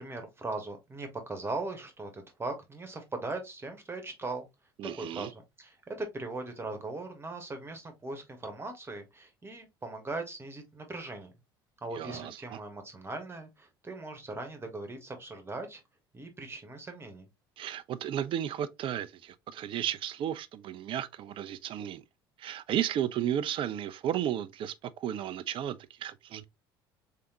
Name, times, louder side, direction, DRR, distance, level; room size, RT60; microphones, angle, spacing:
voice 1, 0.0-4.5 4.9-11.3 11.8-15.8 16.1-17.3, right 2 dB, 20° right, 1.4 m, -39 dB
voice 2, 4.8-5.3 11.9-12.6 17.6-22.0 22.4-26.4, right 10 dB, 45° right, 0.5 m, -34 dB
3.7 x 3.5 x 2.9 m
figure-of-eight pair, 60°, 12 cm